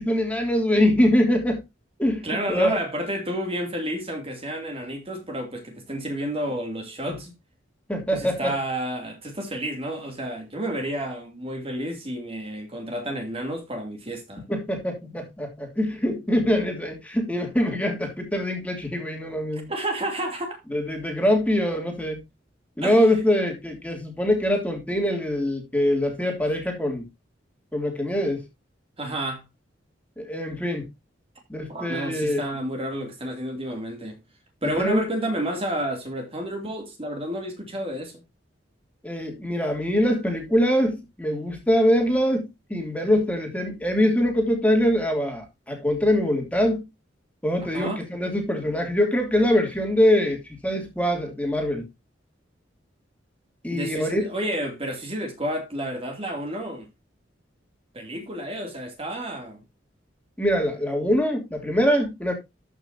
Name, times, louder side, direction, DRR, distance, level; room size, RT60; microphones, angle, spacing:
voice 1, 0.0-1.6 2.0-2.8 7.9-8.5 14.5-19.7 20.7-22.2 22.8-27.0 27.7-28.4 30.2-30.9 31.5-32.4 34.6-35.1 39.0-46.9 47.4-51.9 53.6-54.3 60.4-62.3, equal, 10° left, 2.8 m, -23 dB
voice 2, 2.2-7.3 8.1-14.4 19.7-20.6 22.8-23.0 29.0-29.4 31.7-34.2 34.6-38.2 47.7-48.0 53.7-56.9 57.9-59.6, right 1 dB, 30° right, 2.7 m, -30 dB
13.5 x 6.2 x 2.8 m
head